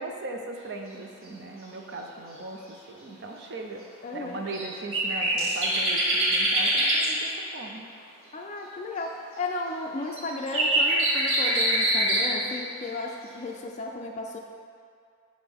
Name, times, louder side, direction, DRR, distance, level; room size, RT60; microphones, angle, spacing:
voice 1, 0.0-7.9, right 2 dB, 55° right, 2 dB, 0.5 m, -38 dB
voice 2, 4.0-4.4 8.3-14.4, left 2 dB, 35° left, 1 dB, 0.3 m, -34 dB
sound 1, 4.5-4.6 4.9-7.1 10.1-12.2, right 1 dB, 75° right, 1.5 m, -24 dB
7.9 x 3.7 x 3.5 m, 2.3 s
head